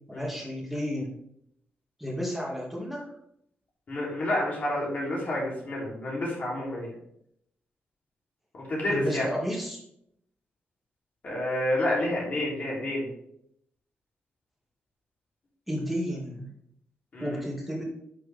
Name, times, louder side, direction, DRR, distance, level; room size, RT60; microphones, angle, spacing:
voice 1, 0.1-1.1 2.0-3.1 8.9-9.8 15.7-16.5 17.2-17.8, equal, ahead, -3 dB, 2.2 m, -32 dB
voice 2, 3.9-6.9 8.5-9.3 11.2-13.1 17.1-17.4, left 1 dB, 40° left, -4 dB, 3.4 m, -29 dB
9.3 x 6.2 x 3.6 m, 0.74 s
wide cardioid pair, 155°, 4 cm